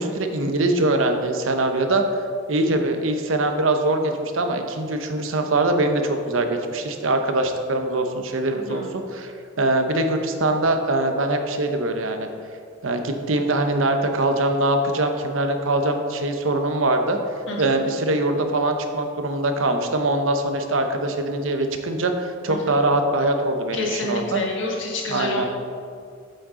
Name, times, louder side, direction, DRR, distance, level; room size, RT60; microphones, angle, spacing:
voice 1, 0.0-2.0 2.5-12.3 12.8-17.2 17.6-24.4 25.1-25.4, right 2 dB, 90° right, 6 dB, 0.9 m, -23 dB
voice 2, 8.5-8.9 17.5-17.8 22.5-22.8 23.7-25.5, left 2 dB, 70° left, -2 dB, 1.7 m, -29 dB
8.8 x 7.8 x 3.8 m, 2.3 s
head